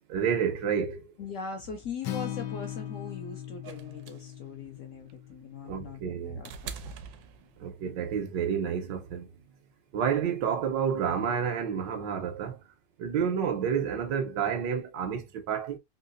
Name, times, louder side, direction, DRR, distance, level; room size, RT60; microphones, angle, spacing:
voice 1, 0.1-1.1 5.7-6.4 7.6-9.3 9.9-12.6 13.0-15.8, right 7 dB, 90° right, 1.5 m, -29 dB
voice 2, 1.2-6.9, left 5 dB, 65° left, 0.8 m, -41 dB
Acoustic guitar, 2.0-6.3, left 12 dB, 80° left, 1.3 m, -39 dB
sound 1, 3.6-7.9 9.1-9.2, right 6 dB, 70° right, 1.0 m, -44 dB
3.7 x 2.8 x 2.5 m
omnidirectional pair, 1.9 m